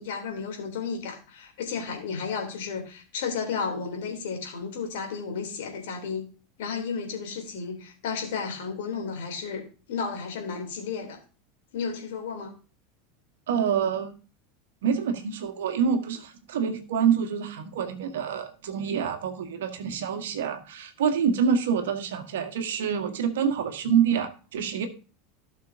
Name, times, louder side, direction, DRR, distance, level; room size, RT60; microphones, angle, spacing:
voice 1, 0.0-6.2 6.6-9.6 9.9-11.2 11.7-12.5, left 5 dB, 65° left, 2 dB, 3.4 m, -33 dB
voice 2, 13.5-14.1 14.8-24.9, right 7 dB, 70° right, 6 dB, 1.7 m, -26 dB
16.5 x 6.3 x 2.8 m, 0.35 s
figure-of-eight pair, 85°, 0 cm